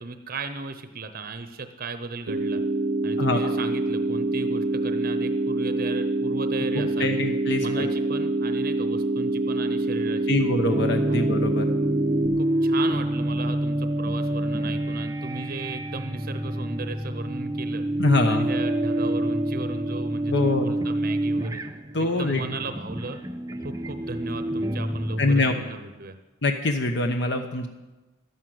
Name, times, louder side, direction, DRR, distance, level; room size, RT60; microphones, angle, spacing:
voice 1, 0.0-2.6 3.0-7.2 7.6-10.5 11.1-11.2 12.4-17.8 18.3-21.6 22.0-23.2 23.6-26.2, right 3 dB, 45° right, 9 dB, 0.8 m, -36 dB
sound 1, 2.3-12.3, right 2 dB, 90° right, 1.1 m, -26 dB
voice 2, 3.2-3.5 6.7-7.9 10.3-11.7 18.0-18.5 20.3-20.7 21.9-22.4 25.2-25.6 26.4-27.7, left 2 dB, 55° left, 5 dB, 0.9 m, -24 dB
sound 2, 10.7-25.8, right 1 dB, 15° right, 0.6 m, -27 dB
12.5 x 11.0 x 7.8 m, 1.1 s
head